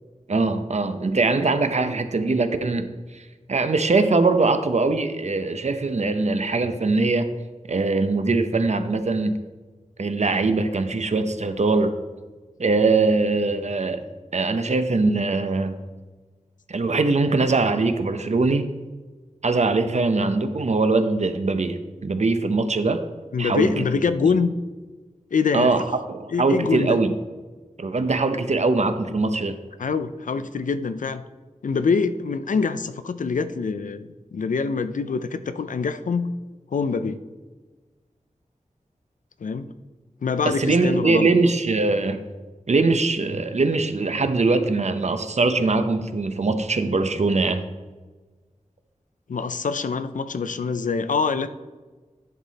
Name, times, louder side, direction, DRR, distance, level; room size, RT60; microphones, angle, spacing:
voice 1, 0.3-2.9 3.1-3.2 3.5-7.3 7.7-9.4 10.0-11.9 12.6-14.0 14.3-15.8 16.7-18.7 19.4-23.0 23.4-23.8 25.5-27.1 27.8-29.6 40.5-42.2 42.7-47.7, right 3 dB, 60° right, 8 dB, 0.7 m, -22 dB
voice 2, 23.3-24.5 25.3-25.8 26.3-27.0 29.8-31.2 31.6-36.3 36.7-37.2 39.4-39.8 40.2-41.3 49.3-51.5, left 5 dB, 85° left, 12 dB, 0.5 m, -25 dB
10.0 x 5.7 x 4.1 m, 1.3 s
wide cardioid pair, 70°, 13 cm